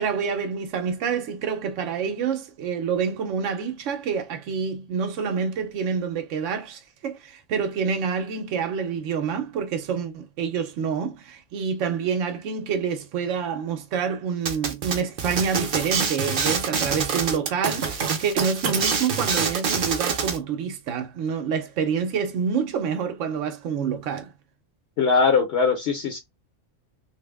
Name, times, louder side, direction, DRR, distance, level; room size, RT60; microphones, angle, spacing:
voice 1, 0.0-24.3, right 6 dB, 80° right, 1.0 m, -27 dB
sound 1, 14.5-20.4, right 5 dB, 50° right, 0.7 m, -26 dB
voice 2, 25.0-26.2, left 5 dB, 60° left, 0.9 m, -21 dB
3.1 x 2.1 x 3.4 m
omnidirectional pair, 1.3 m